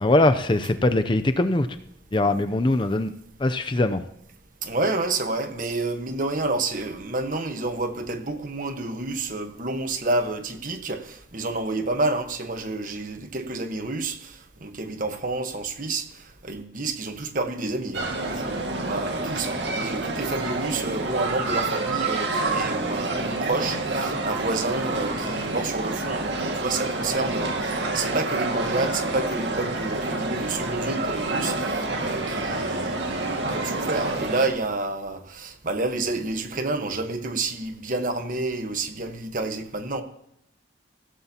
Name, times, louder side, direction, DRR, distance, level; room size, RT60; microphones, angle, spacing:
voice 1, 0.0-1.7 2.1-3.1 3.4-4.0, left 2 dB, 25° left, 0.6 m, -21 dB
voice 2, 4.6-16.1 16.4-40.0, right 2 dB, 45° right, 1.3 m, -29 dB
sound 1, 17.9-34.5, right 2 dB, 75° right, 2.0 m, -28 dB
16.0 x 14.0 x 2.9 m
head